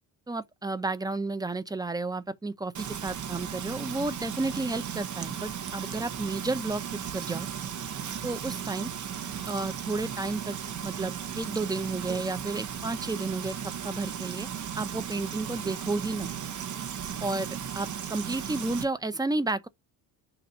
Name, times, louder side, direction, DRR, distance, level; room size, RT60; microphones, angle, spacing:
voice 1, 0.3-7.5 8.2-8.9 9.5-10.6 10.8-14.5 14.8-16.3 17.2-19.7, right 2 dB, 10° right, 0.6 m, -32 dB
Frying (food), 2.7-18.8, right 8 dB, 45° right, 1.1 m, -36 dB
6.9 x 2.6 x 5.3 m
cardioid pair, 95°, 41 cm